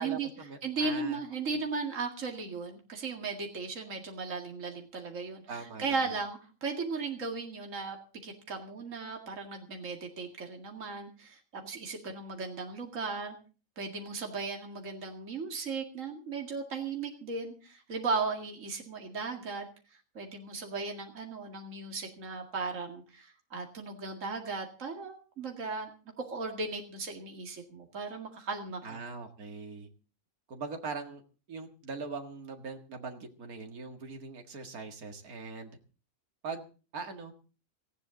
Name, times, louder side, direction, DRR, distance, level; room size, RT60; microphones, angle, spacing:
voice 1, 0.0-1.2 5.5-6.1 28.8-29.9 30.5-31.2 31.5-35.7 36.4-36.6 36.9-37.3, right 4 dB, 75° right, 4 dB, 2.4 m, -41 dB
voice 2, 0.6-8.0 8.2-13.4 13.8-19.7 20.1-25.9 26.2-29.0, right 4 dB, 60° right, 2 dB, 2.6 m, -36 dB
18.5 x 16.0 x 3.9 m, 0.36 s
omnidirectional pair, 1.5 m